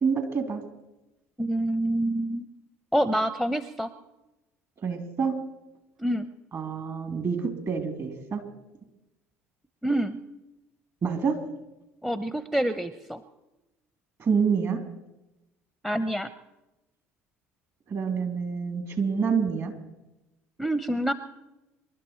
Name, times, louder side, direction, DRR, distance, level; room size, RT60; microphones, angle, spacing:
voice 1, 0.0-0.6 4.8-5.3 6.5-8.4 11.0-11.3 14.2-14.8 17.9-19.7, right 6 dB, 40° right, 6 dB, 3.1 m, -27 dB
voice 2, 1.4-2.5 2.9-3.9 6.0-6.3 9.8-10.2 12.0-13.2 15.8-16.3 20.6-21.1, right 1 dB, ahead, 13 dB, 0.8 m, -27 dB
26.0 x 12.0 x 4.5 m, 0.99 s
figure-of-eight pair, 60°, 8 cm